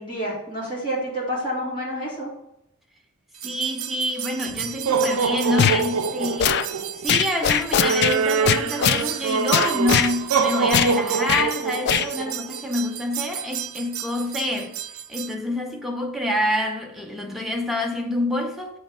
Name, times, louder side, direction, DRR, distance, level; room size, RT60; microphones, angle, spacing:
voice 1, 0.0-2.3, equal, 25° left, 2.3 m, -28 dB
voice 2, 3.4-6.6 7.0-14.7 15.1-18.8, left 1 dB, ahead, 0.7 m, -27 dB
sound 1, 3.4-15.3, right 5 dB, 70° right, 0.4 m, -26 dB
sound 2, 5.6-5.8 6.4-6.7 7.1-8.2 8.5-9.0 9.5-10.1 10.7-10.9 11.3-11.5 11.9-12.1, left 8 dB, 50° left, 0.3 m, -20 dB
7.0 x 3.1 x 5.1 m
head